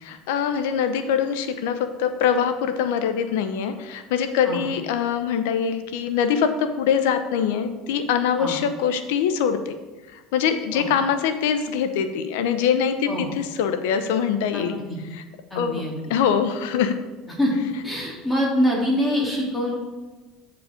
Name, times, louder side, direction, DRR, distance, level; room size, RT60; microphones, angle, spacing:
voice 1, 0.0-9.8 10.1-14.8 15.1-15.2 15.5-15.8 16.1-16.9, left 7 dB, 85° left, 9 dB, 0.7 m, -23 dB
voice 2, 15.5-16.1 17.4-17.5 17.8-19.7, equal, 10° left, -3 dB, 2.5 m, -24 dB
8.6 x 4.8 x 5.0 m, 1.2 s
supercardioid pair, 120°, 0 cm